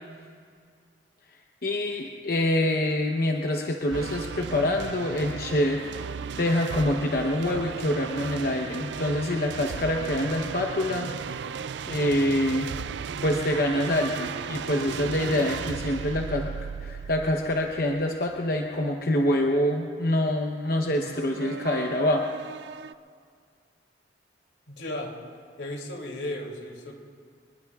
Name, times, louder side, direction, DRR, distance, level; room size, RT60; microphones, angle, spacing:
voice 1, 1.6-11.4 11.9-12.7 13.2-16.5 16.8-22.2, left 1 dB, 55° left, 2 dB, 1.0 m, -26 dB
sound 1, 3.9-18.9 20.6-22.9, right 6 dB, 75° right, 0.4 m, -35 dB
voice 2, 24.7-25.1 25.6-26.9, left 1 dB, 90° left, 1 dB, 2.9 m, -35 dB
28.0 x 20.0 x 2.4 m, 2.1 s
head